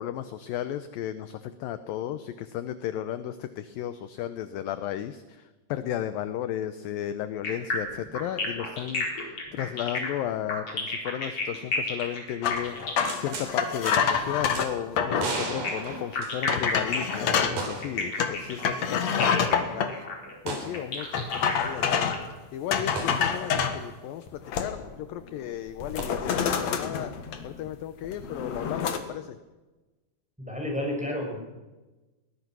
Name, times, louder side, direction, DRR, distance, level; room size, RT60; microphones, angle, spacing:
voice 1, 0.0-19.9 20.5-22.2 22.5-27.1 27.4-29.4, left 11 dB, 75° left, 11 dB, 2.3 m, -34 dB
sound 1, 7.4-14.2 15.4-22.1, left 3 dB, 35° left, 5.0 m, -32 dB
sound 2, 12.4-15.3 15.9-16.0 16.5-17.6 18.2-19.9 21.1-22.3 22.7-23.8 24.3-25.0 25.3-25.5 25.8-27.7 28.0-29.0, left 7 dB, 55° left, 2.3 m, -27 dB
sound 3, 13.0-13.5 13.9-14.0 14.5-14.7 15.2-16.7 17.6-18.0 18.3-18.4 20.5-20.7 23.0-23.1 26.0-26.1, right 3 dB, 55° right, 5.4 m, -34 dB
voice 2, 30.4-31.4, left 1 dB, ahead, 0 dB, 6.2 m, -31 dB
22.0 x 19.5 x 6.2 m, 1.2 s
omnidirectional pair, 4.6 m